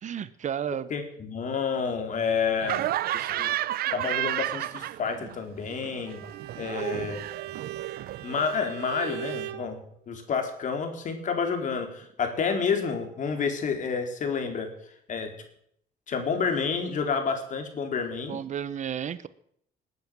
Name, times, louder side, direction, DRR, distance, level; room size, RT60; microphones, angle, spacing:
voice 1, 0.0-0.9 6.6-6.9 18.2-19.3, right 9 dB, 45° right, 15 dB, 0.9 m, -33 dB
voice 2, 0.9-2.9 3.1-3.5 3.9-6.2 6.6-7.2 8.2-14.7 15.1-15.3 16.1-18.4, left 5 dB, 50° left, 5 dB, 3.9 m, -29 dB
Laughter, 2.6-5.4 5.7-8.6, right 14 dB, 65° right, 0.6 m, -31 dB
Bowed string instrument, 6.0-9.7, right 13 dB, 80° right, 1.3 m, -39 dB
19.5 x 9.4 x 7.6 m, 0.68 s
cardioid pair, 110°, 17 cm